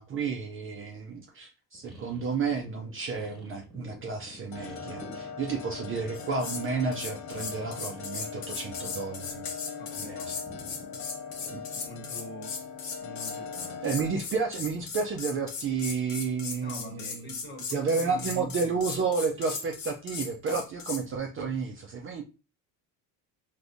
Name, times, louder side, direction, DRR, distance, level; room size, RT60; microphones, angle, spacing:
voice 1, 0.0-9.4 9.9-10.4 11.5-11.6 13.8-17.4 17.7-22.2, right 5 dB, 35° right, 0.4 m, -31 dB
sound 1, 1.7-8.1 8.4-9.4 9.7-13.3 14.0-14.4, equal, ahead, 1.2 m, -51 dB
sound 2, 4.5-14.1, left 6 dB, 50° left, 0.4 m, -41 dB
sound 3, 6.1-6.6 6.9-21.0, left 5 dB, 65° left, 0.9 m, -38 dB
voice 2, 9.7-10.4 11.7-12.6 13.0-14.0 16.5-18.8, equal, 25° left, 1.1 m, -44 dB
3.4 x 2.6 x 2.5 m
cardioid pair, 125°, 38 cm